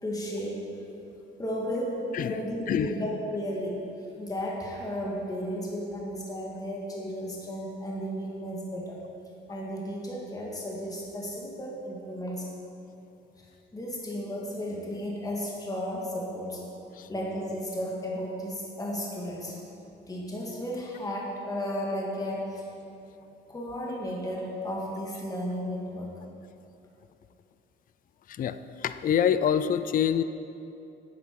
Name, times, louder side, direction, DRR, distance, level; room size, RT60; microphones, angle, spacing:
voice 1, 0.0-0.7 1.4-9.0 9.5-12.5 13.4-13.5 13.7-16.6 17.1-19.6 20.1-22.7 23.5-26.2, equal, 20° left, -3 dB, 1.8 m, -34 dB
voice 2, 28.4-30.2, left 9 dB, 45° left, 12 dB, 0.4 m, -26 dB
9.9 x 8.2 x 4.7 m, 2.9 s
cardioid pair, 90°, 20 cm